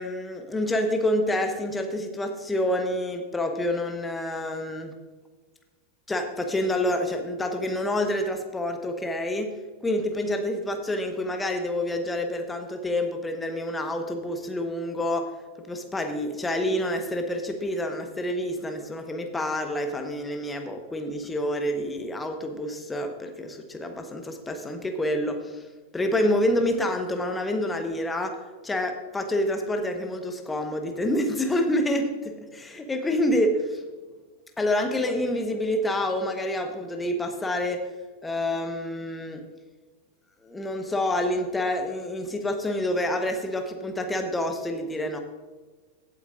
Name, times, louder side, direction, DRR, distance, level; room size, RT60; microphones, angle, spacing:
voice 1, 0.0-5.0 6.1-9.5 9.8-15.3 15.7-25.7 25.9-28.4 28.6-33.8 34.6-37.9 38.2-39.4 40.4-45.2, left 1 dB, 10° left, 5 dB, 1.1 m, -28 dB
16.5 x 8.4 x 2.5 m, 1.3 s
figure-of-eight pair, 90°, 0 cm